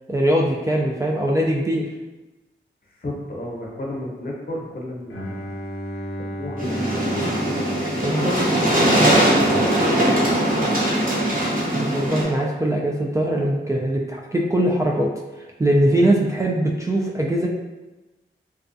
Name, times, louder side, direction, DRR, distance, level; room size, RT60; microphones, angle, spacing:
voice 1, 0.1-1.9 8.0-8.3 11.7-15.1 15.6-17.5, right 1 dB, 15° right, -2 dB, 0.3 m, -21 dB
voice 2, 2.9-5.4 5.9-6.0 6.3-6.8 7.1-7.2 7.8-10.5, left 1 dB, 45° left, -3 dB, 0.7 m, -32 dB
Bowed string instrument, 5.1-9.0, equal, 85° left, 0.5 m, -34 dB
sound 1, 6.6-12.2, right 1 dB, 40° right, 1.0 m, -20 dB
2.3 x 2.3 x 2.5 m, 1.1 s
cardioid pair, 45°, 21 cm